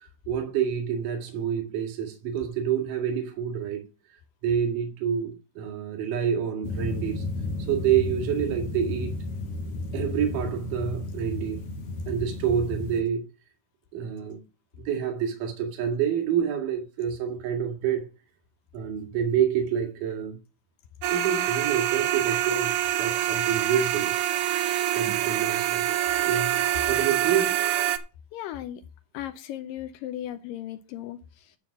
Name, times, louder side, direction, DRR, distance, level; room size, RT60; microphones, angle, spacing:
voice 1, 0.3-3.9 4.4-7.2 7.7-9.1 9.9-11.7 12.1-13.3 13.9-14.4 14.8-18.1 18.7-20.4 21.1-22.7 23.0-24.1 24.9-25.8 26.2-27.6, right 8 dB, 60° right, 3.4 m, -27 dB
sound 1, 6.6-13.0, left 2 dB, 50° left, 1.9 m, -33 dB
sound 2, 21.0-28.0, right 12 dB, 80° right, 1.8 m, -26 dB
voice 2, 28.3-28.8 29.1-31.6, left 12 dB, 80° left, 2.1 m, -36 dB
11.0 x 4.0 x 7.1 m
omnidirectional pair, 4.6 m